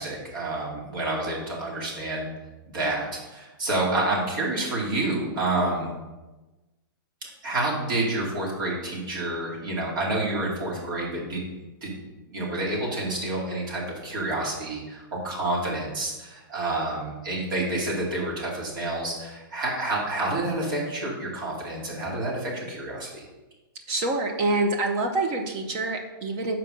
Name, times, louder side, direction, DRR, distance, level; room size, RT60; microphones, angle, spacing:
voice 1, 0.0-2.3 2.7-5.9 7.2-11.4 11.8-11.9 12.2-23.2, right 2 dB, 65° right, -3 dB, 2.6 m, -29 dB
voice 2, 23.9-26.6, right 2 dB, 30° right, 4 dB, 0.6 m, -26 dB
6.4 x 4.5 x 5.2 m, 1.1 s
hypercardioid pair, 160°, 12 cm